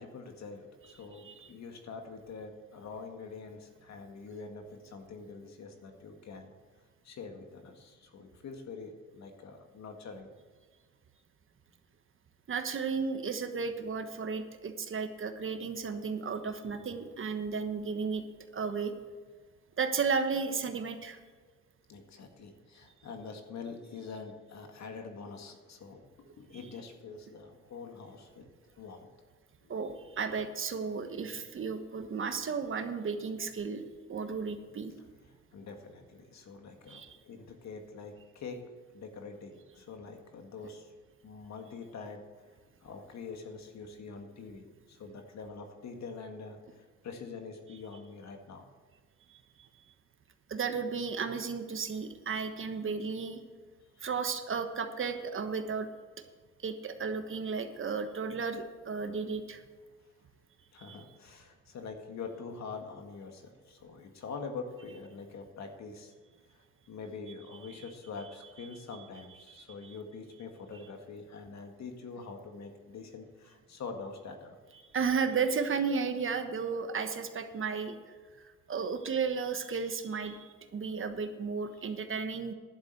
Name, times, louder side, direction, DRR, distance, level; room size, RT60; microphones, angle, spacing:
voice 1, 0.0-6.5 7.0-10.3 16.6-16.7 21.9-28.5 28.8-29.1 29.6-29.7 35.5-38.6 38.9-40.9 41.2-42.2 42.8-48.6 53.9-54.1 60.7-66.1 66.9-74.6, left 4 dB, 65° left, 4 dB, 2.0 m, -45 dB
voice 2, 1.1-1.5 12.5-18.2 18.5-18.9 19.8-21.2 29.7-34.9 36.9-37.2 49.3-49.7 50.5-53.4 54.0-55.9 56.6-59.6 60.8-61.0 68.9-69.0 69.6-70.0 74.9-78.0 78.4-82.5, right 5 dB, 45° right, 8 dB, 1.2 m, -34 dB
11.5 x 7.5 x 7.8 m, 1.5 s
cardioid pair, 90°, 30 cm